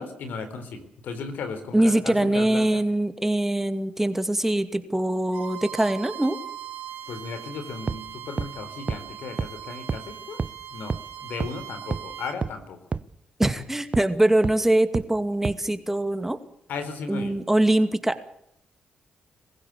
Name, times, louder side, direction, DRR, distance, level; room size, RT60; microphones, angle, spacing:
voice 1, 0.0-2.8 7.1-10.4 10.7-12.8 16.7-17.4, left 5 dB, 75° left, 10 dB, 3.8 m, -36 dB
voice 2, 1.7-6.4 13.4-16.4 17.1-18.3, right 1 dB, 10° right, 10 dB, 2.3 m, -23 dB
Bowed string instrument, 5.3-12.4, right 10 dB, 85° right, 3.2 m, -40 dB
sound 1, 7.9-8.0 8.4-8.5 8.9-9.0 9.4-9.5 9.9-10.0 10.4-10.5 10.9-11.0 11.4-11.5 11.9-12.0 12.4-12.5 12.9-13.0 13.4-13.5 13.9-14.0 14.4-14.5 14.9-15.0 15.4-15.5, right 4 dB, 40° right, 0.9 m, -27 dB
22.0 x 15.5 x 8.3 m, 0.73 s
supercardioid pair, 60°, 3 cm